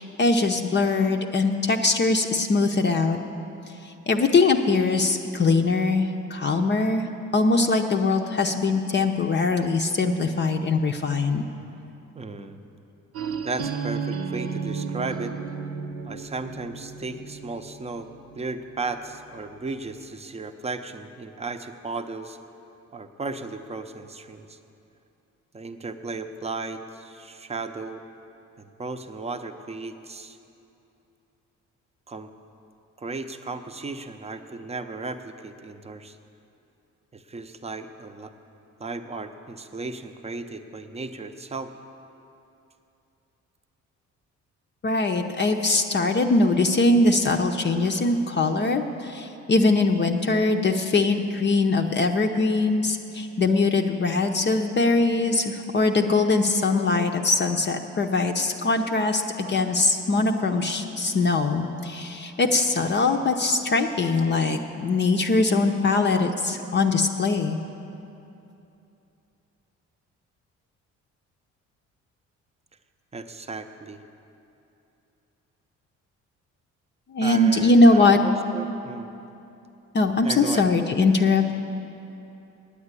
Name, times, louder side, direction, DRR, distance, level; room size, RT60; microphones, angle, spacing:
voice 1, 0.0-3.2 3.8-11.5 44.8-67.6 77.1-78.2 79.9-81.6, left 3 dB, 35° left, 4 dB, 0.6 m, -22 dB
voice 2, 12.1-12.6 13.4-15.4 16.0-18.1 18.4-22.4 22.9-24.6 25.5-28.0 28.6-30.4 32.1-32.3 33.0-36.2 37.1-38.3 38.8-41.7 73.1-74.0 77.2-79.1 80.2-80.7, right 3 dB, 20° right, 8 dB, 0.7 m, -35 dB
sound 1, 13.1-18.9, right 5 dB, 55° right, 0.8 m, -33 dB
9.5 x 8.7 x 8.2 m, 2.9 s
cardioid pair, 90°, 30 cm